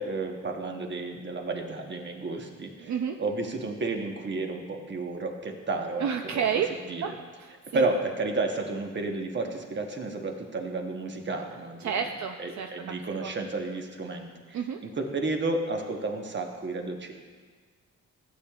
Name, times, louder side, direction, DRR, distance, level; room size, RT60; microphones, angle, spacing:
voice 1, 0.0-6.1 6.5-7.1 7.7-12.0 12.4-17.1, right 3 dB, 40° right, 3 dB, 1.1 m, -32 dB
voice 2, 2.8-3.2 6.0-6.7 7.0-7.1 7.4-7.9 11.8-12.7 13.2-13.3 14.5-14.8, right 7 dB, 70° right, 4 dB, 0.5 m, -30 dB
15.0 x 8.3 x 2.4 m, 1.5 s
cardioid pair, 110°, 30 cm